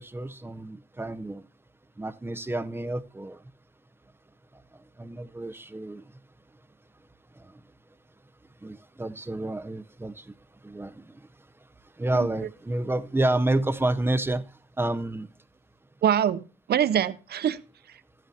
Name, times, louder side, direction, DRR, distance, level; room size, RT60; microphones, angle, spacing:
voice 1, 0.0-1.4 2.0-3.4 5.0-6.0 8.6-10.2 10.6-11.0 12.0-14.4 14.8-15.3, right 2 dB, 15° right, 0.6 m, -29 dB
voice 2, 16.0-17.6 17.9-18.0, right 9 dB, 75° right, 0.6 m, -25 dB
15.5 x 10.5 x 2.8 m
wide cardioid pair, 125°, 17 cm